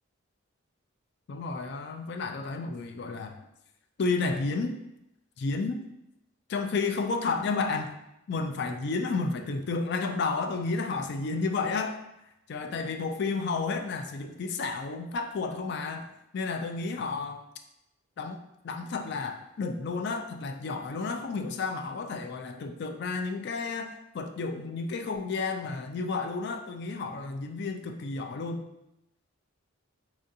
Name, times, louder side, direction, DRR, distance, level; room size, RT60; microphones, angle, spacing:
voice 1, 1.3-3.4 4.0-4.8 5.4-5.8 6.5-7.9 8.3-12.0 12.5-16.1 16.3-17.4 18.2-18.4 18.6-28.7, left 4 dB, 50° left, 5 dB, 0.3 m, -31 dB
4.4 x 2.5 x 2.6 m, 0.88 s
head